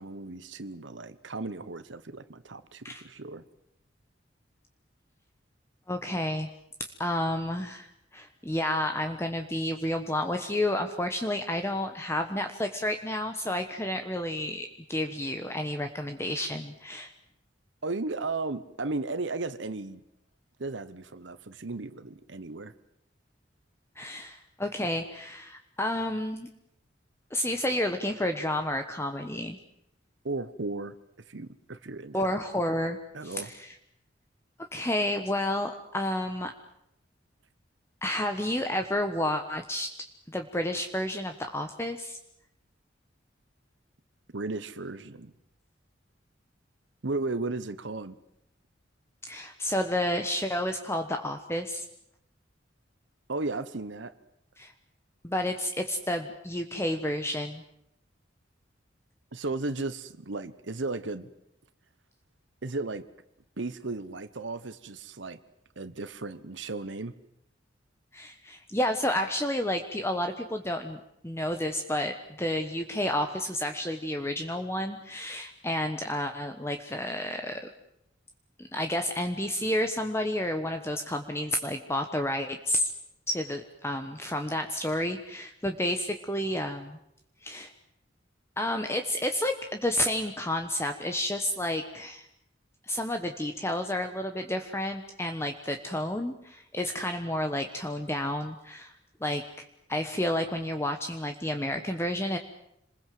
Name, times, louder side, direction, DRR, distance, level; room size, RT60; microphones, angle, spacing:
voice 1, 0.0-3.4 17.8-20.0 20.6-22.7 30.2-30.9 31.3-32.3 33.1-33.5 44.3-45.3 47.0-48.2 53.3-54.1 59.3-61.3 62.6-63.0 63.6-65.4 65.8-67.1, right 3 dB, 75° right, 1.0 m, -35 dB
voice 2, 5.9-6.5 7.0-7.9 8.1-17.1 24.0-26.5 27.3-29.6 32.1-33.0 33.2-33.7 34.7-36.5 38.0-42.2 49.3-51.8 54.6-54.7 55.2-57.6 68.1-77.6 78.6-82.9 83.3-87.0 87.4-87.7 88.6-92.3 92.9-98.9 99.2-102.4, left 1 dB, 15° left, 1.2 m, -30 dB
27.0 x 21.0 x 7.8 m
head